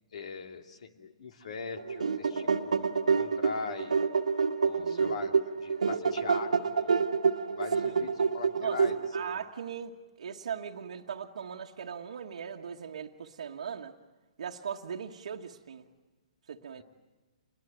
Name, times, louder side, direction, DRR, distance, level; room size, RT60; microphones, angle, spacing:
voice 1, 0.1-4.0 4.6-7.0 7.5-9.5 16.8-16.9, left 4 dB, 65° left, 6 dB, 2.8 m, -41 dB
sound 1, 1.8-9.4, right 5 dB, 85° right, 1.6 m, -28 dB
voice 2, 4.8-5.2 7.8-8.1 8.6-8.8 9.1-13.9 14.4-15.9 16.5-16.8, right 7 dB, 70° right, 1 dB, 1.4 m, -39 dB
28.5 x 21.5 x 9.0 m, 1.3 s
hypercardioid pair, 135°, 4 cm